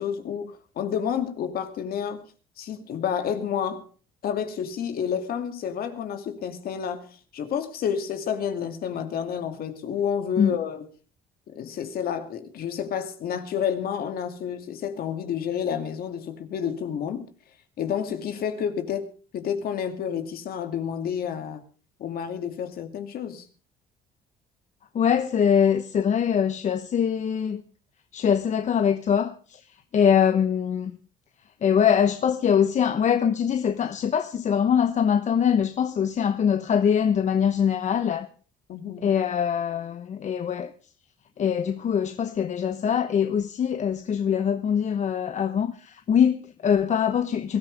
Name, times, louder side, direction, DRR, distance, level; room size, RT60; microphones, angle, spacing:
voice 1, 0.0-2.3 2.6-3.9 4.2-7.1 7.3-10.9 11.5-17.3 17.8-19.1 19.3-21.6 22.0-23.4 38.7-39.1, left 8 dB, 60° left, 2.5 m, -30 dB
voice 2, 24.9-27.6 28.1-29.6 29.9-30.9 31.6-38.3 39.0-40.7 41.4-47.6, left 8 dB, 45° left, 1.0 m, -23 dB
22.0 x 14.0 x 3.4 m
cardioid pair, 110°, 17 cm